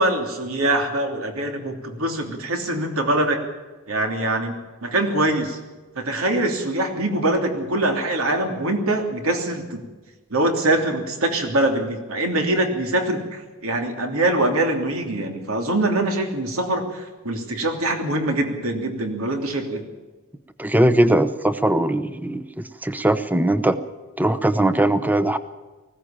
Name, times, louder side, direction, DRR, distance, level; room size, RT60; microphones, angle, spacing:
voice 1, 0.0-3.4 3.9-4.6 4.8-5.6 5.9-9.8 10.3-19.9, right 1 dB, 80° right, 3 dB, 3.1 m, -23 dB
voice 2, 20.6-23.8 24.2-25.4, right 1 dB, 10° right, 11 dB, 0.9 m, -20 dB
19.5 x 16.0 x 8.9 m, 1.3 s
head